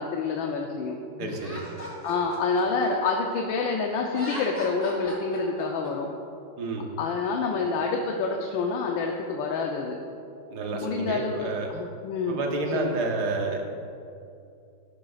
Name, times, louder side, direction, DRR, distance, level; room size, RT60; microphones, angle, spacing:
voice 1, 0.0-1.4 2.0-6.1 7.0-10.0 10.7-12.4 12.7-13.0, left 4 dB, 80° left, 1 dB, 1.5 m, -28 dB
voice 2, 1.2-1.6 6.6-6.9 10.5-11.7 12.3-13.7, right 3 dB, 60° right, 1 dB, 1.6 m, -30 dB
Laughter, 1.3-3.6 4.0-5.9, equal, 20° left, 2.4 m, -38 dB
12.5 x 12.0 x 2.4 m, 2.6 s
omnidirectional pair, 2.1 m